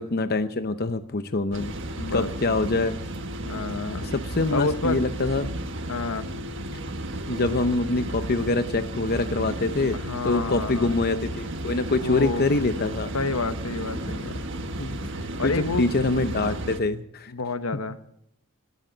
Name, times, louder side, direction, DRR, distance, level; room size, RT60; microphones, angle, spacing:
voice 1, 0.0-1.7 2.1-2.9 4.0-5.5 7.3-10.0 10.2-13.1 14.8-15.1 15.4-17.3, left 3 dB, 45° left, 9 dB, 0.8 m, -25 dB
sound 1, 1.5-16.8, right 1 dB, 60° right, 1.5 m, -33 dB
voice 2, 1.9-2.3 3.5-4.1 4.5-5.0 5.9-6.3 9.9-10.9 12.0-12.5 13.1-14.4 15.4-15.9 17.3-18.2, left 3 dB, 75° left, 10 dB, 1.1 m, -29 dB
19.0 x 13.5 x 4.0 m, 0.75 s
head